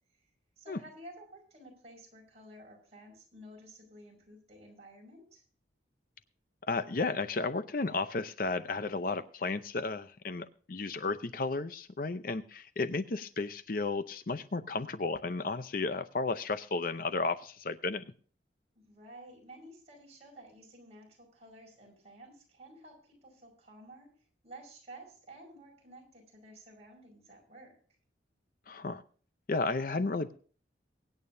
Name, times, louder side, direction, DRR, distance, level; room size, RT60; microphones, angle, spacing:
voice 1, 0.6-5.4 18.8-24.1 24.4-27.8, right 1 dB, 35° right, -1 dB, 5.3 m, -52 dB
voice 2, 6.7-18.0 28.7-29.0 29.5-30.3, left 3 dB, 50° left, 11 dB, 0.6 m, -33 dB
24.0 x 9.1 x 2.6 m, 0.42 s
head